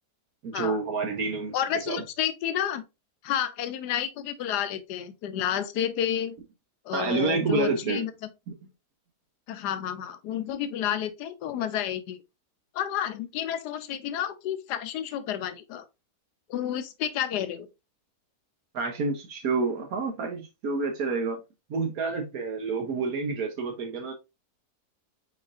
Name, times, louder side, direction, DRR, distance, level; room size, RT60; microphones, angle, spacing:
voice 1, 0.4-1.5 1.9-2.0 6.9-8.1 8.5-8.6 18.7-21.4 21.7-24.1, right 4 dB, 65° right, 1.3 m, -28 dB
voice 2, 1.5-2.8 3.2-6.4 6.9-8.1 9.5-12.2 12.7-15.9 16.5-17.7, left 10 dB, 85° left, 1.2 m, -30 dB
4.7 x 4.1 x 2.4 m
omnidirectional pair, 1.7 m